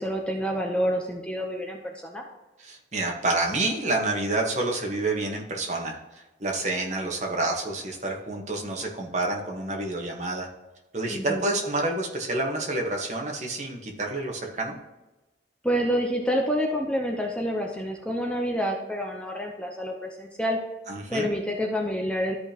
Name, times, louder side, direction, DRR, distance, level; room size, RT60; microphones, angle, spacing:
voice 1, 0.0-2.2 11.1-11.4 15.6-20.6 21.1-22.4, equal, 5° left, 1 dB, 0.8 m, -28 dB
voice 2, 2.6-10.5 10.9-14.8 20.9-21.3, right 2 dB, 40° right, 1 dB, 1.4 m, -28 dB
13.0 x 5.2 x 3.0 m, 1.1 s
head